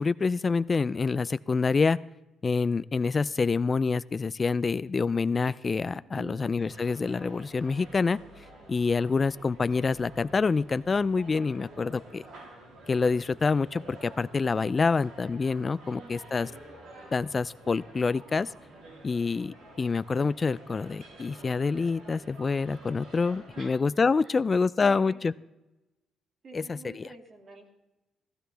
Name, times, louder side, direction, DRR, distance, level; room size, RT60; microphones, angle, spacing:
voice 1, 0.0-2.0 2.4-8.2 8.7-12.2 12.9-16.5 17.1-18.5 19.0-25.3 26.5-27.1, left 4 dB, 35° left, 17 dB, 0.3 m, -27 dB
voice 2, 5.9-6.5 15.8-16.5 23.6-23.7 24.8-25.3 26.4-27.9, right 3 dB, 50° right, 2 dB, 2.6 m, -48 dB
sound 1, 6.6-23.8, right 1 dB, 85° right, 3.1 m, -50 dB
15.0 x 15.0 x 3.4 m, 0.99 s
cardioid pair, 90°, 0 cm